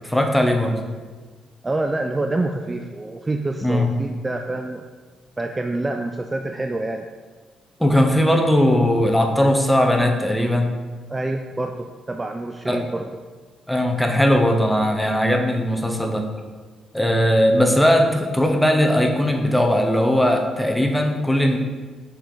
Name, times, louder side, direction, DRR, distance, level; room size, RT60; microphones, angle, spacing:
voice 1, 0.0-0.8 3.6-4.0 7.8-10.7 12.7-12.8 13.7-16.3 16.9-21.6, equal, 5° left, 3 dB, 0.8 m, -19 dB
voice 2, 1.6-4.8 5.4-7.1 11.1-13.1, right 2 dB, 20° right, 5 dB, 0.4 m, -27 dB
6.5 x 4.0 x 4.7 m, 1.4 s
cardioid pair, 90°, 0 cm